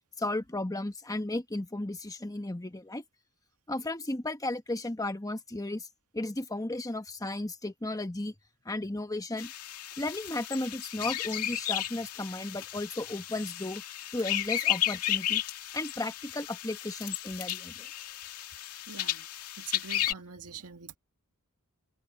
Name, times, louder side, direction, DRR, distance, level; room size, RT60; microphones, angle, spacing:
voice 1, 0.2-3.0 3.7-5.9 6.1-8.3 8.6-9.5 10.0-13.8 14.1-15.4 15.7-17.9, left 2 dB, 15° left, 1.2 m, -34 dB
sound 1, 9.4-20.1, left 12 dB, 85° left, 2.3 m, -34 dB
voice 2, 18.9-19.3 19.6-21.0, right 6 dB, 80° right, 2.1 m, -44 dB
open air
head